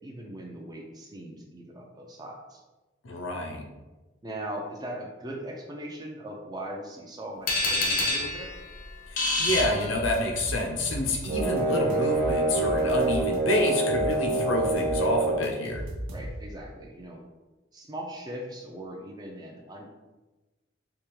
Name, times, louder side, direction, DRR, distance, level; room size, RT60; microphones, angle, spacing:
voice 1, 0.0-2.6 4.2-8.5 16.1-17.2 17.7-19.9, right 1 dB, 20° right, 0 dB, 0.4 m, -39 dB
voice 2, 3.0-3.7 9.1-15.9, left 1 dB, 90° left, 1 dB, 0.6 m, -28 dB
sound 1, 7.5-10.5, left 2 dB, 45° left, 0.6 m, -28 dB
sound 2, 9.5-11.6 11.9-13.4 13.7-16.6, right 1 dB, 80° right, 0.6 m, -37 dB
sound 3, 11.3-15.5, right 2 dB, 45° right, 1.0 m, -26 dB
3.5 x 2.8 x 3.0 m, 1.1 s
head